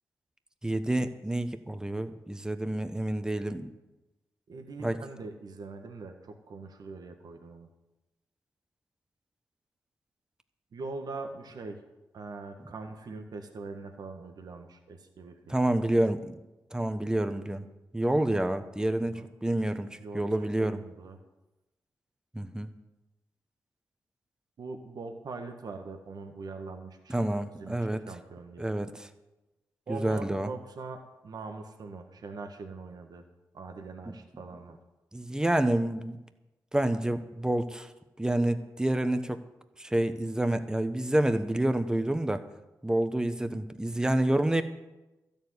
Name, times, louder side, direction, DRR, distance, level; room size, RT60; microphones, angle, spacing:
voice 1, 0.6-3.7 4.8-5.0 15.5-16.4 16.7-17.7 17.9-19.9 20.1-20.8 22.3-22.7 27.1-28.0 28.6-29.1 29.9-30.5 34.1-34.2 35.1-36.2 36.7-37.9 38.2-39.4 39.8-42.4 42.8-44.6, right 1 dB, 10° right, 9 dB, 1.2 m, -28 dB
voice 2, 4.5-7.7 10.7-11.8 12.1-15.5 19.0-19.3 20.0-21.2 24.6-27.3 27.6-27.8 28.1-28.7 29.9-33.2 33.5-34.8, right 3 dB, 70° right, 5 dB, 1.5 m, -42 dB
12.5 x 7.1 x 9.7 m, 1.0 s
cardioid pair, 60°, 7 cm